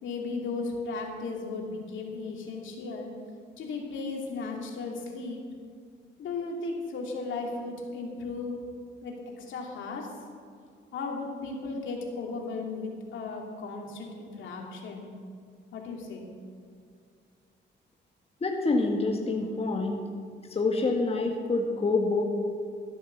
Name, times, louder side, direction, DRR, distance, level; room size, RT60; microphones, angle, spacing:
voice 1, 0.0-3.1 3.6-5.4 6.2-8.6 9.0-10.1 10.9-15.1 15.7-16.2, left 3 dB, 75° left, 0 dB, 2.6 m, -35 dB
voice 2, 18.4-20.0 20.5-22.2, left 3 dB, 30° left, 1 dB, 1.6 m, -27 dB
13.5 x 8.6 x 7.0 m, 2.2 s
cardioid pair, 90°, 20 cm